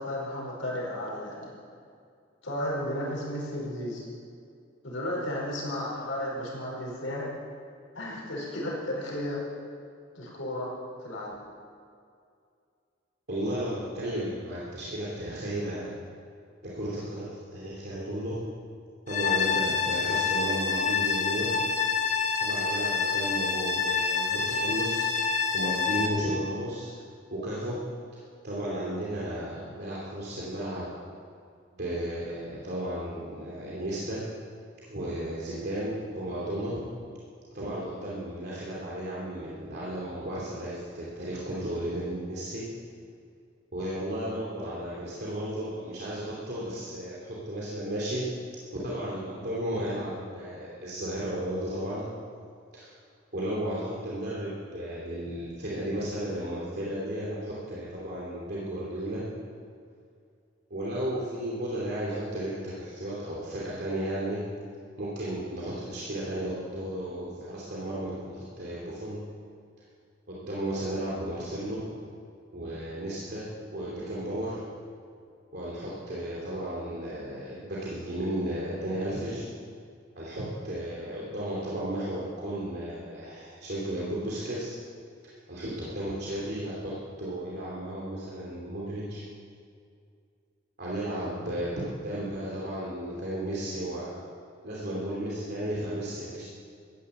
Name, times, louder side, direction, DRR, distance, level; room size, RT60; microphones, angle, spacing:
voice 1, 0.0-1.5 2.4-4.0 4.8-7.3 7.9-9.4 10.2-10.7 11.0-11.3, left 1 dB, 90° left, -4 dB, 5.3 m, -33 dB
voice 2, 13.3-15.9 16.6-18.4 19.1-21.6 22.4-26.9 27.3-27.8 28.4-30.9 31.8-34.3 34.9-36.8 37.5-42.6 43.7-48.3 48.7-52.1 52.7-52.9 53.3-59.2 60.7-64.4 65.0-69.2 70.3-71.9 72.5-74.6 75.5-79.4 80.1-84.8 85.2-86.9 87.2-89.2 90.8-94.1 94.6-96.4, right 1 dB, 55° right, -6 dB, 2.9 m, -34 dB
sound 1, 19.1-26.1, left 5 dB, 35° left, 1.5 m, -27 dB
15.0 x 10.5 x 8.2 m, 2.3 s
head